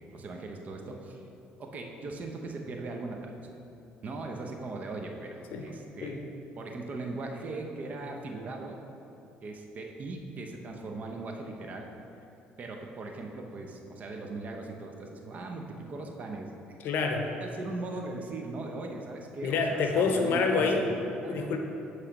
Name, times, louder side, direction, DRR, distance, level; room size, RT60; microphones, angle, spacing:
voice 1, 0.1-1.2 1.6-3.5 4.0-6.1 6.6-8.8 9.4-11.9 12.6-16.8 17.4-21.5, right 2 dB, 45° right, 2 dB, 0.8 m, -39 dB
voice 2, 16.8-17.3 19.4-20.9 21.3-21.6, left 4 dB, 70° left, 4 dB, 0.7 m, -27 dB
8.6 x 3.3 x 5.2 m, 2.8 s
cardioid pair, 105°, 4 cm